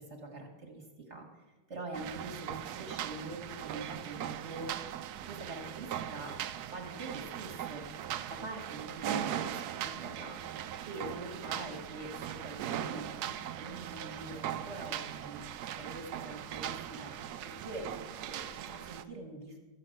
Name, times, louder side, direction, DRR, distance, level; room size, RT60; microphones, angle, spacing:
voice 1, 0.0-4.9 5.2-6.4 6.6-7.9 8.3-15.4 15.8-18.0 18.2-19.6, right 2 dB, 35° right, 1 dB, 1.5 m, -44 dB
sound 1, 1.9-19.0, right 10 dB, 80° right, 0.8 m, -39 dB
12.5 x 5.8 x 7.7 m, 1.2 s
omnidirectional pair, 2.2 m